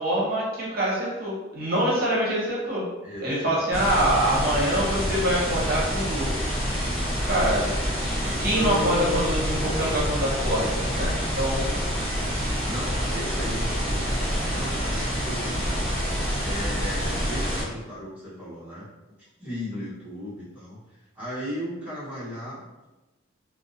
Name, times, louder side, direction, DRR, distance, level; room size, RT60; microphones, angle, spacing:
voice 1, 0.0-2.8 3.2-6.3 7.3-7.7 8.0-11.7 14.9-15.1, right 1 dB, 50° right, -7 dB, 0.8 m, -25 dB
voice 2, 3.0-4.7 11.6-11.8 12.6-15.9 16.4-18.9 19.4-22.9, equal, 5° right, -11 dB, 0.9 m, -37 dB
sound 1, 3.7-17.6, equal, 15° left, 1.3 m, -27 dB
Acoustic guitar, 8.6-11.3, left 1 dB, 65° left, 0.3 m, -34 dB
2.6 x 2.0 x 2.5 m, 1.1 s
head